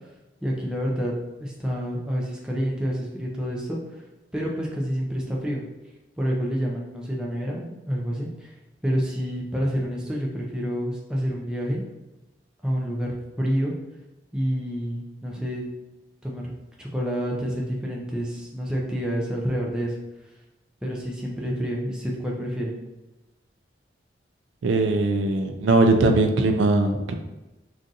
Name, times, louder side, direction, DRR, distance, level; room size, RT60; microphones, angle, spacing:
voice 1, 0.4-1.1 1.4-3.8 4.3-5.6 6.2-8.5 8.8-11.9 12.6-13.7 14.3-15.6 16.2-16.5 16.8-20.0 20.8-22.8, equal, 5° right, -3 dB, 0.4 m, -28 dB
voice 2, 24.6-27.1, right 2 dB, 90° right, 5 dB, 0.4 m, -20 dB
2.5 x 2.4 x 3.9 m, 1.0 s
head